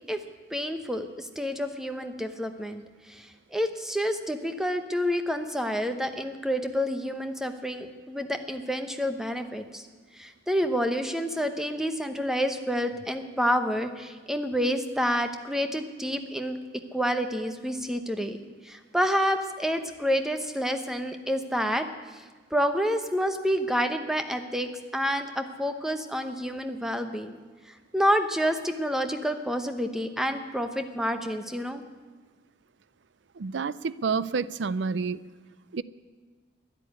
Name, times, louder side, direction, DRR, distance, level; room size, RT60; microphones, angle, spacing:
voice 1, 0.5-2.8 3.1-9.9 10.1-16.6 16.9-18.4 18.6-21.9 22.1-27.4 27.7-31.8, equal, 5° right, 7 dB, 0.9 m, -28 dB
voice 2, 33.4-35.2 35.7-35.8, right 5 dB, 75° right, 18 dB, 0.5 m, -29 dB
13.0 x 11.0 x 9.6 m, 1.4 s
head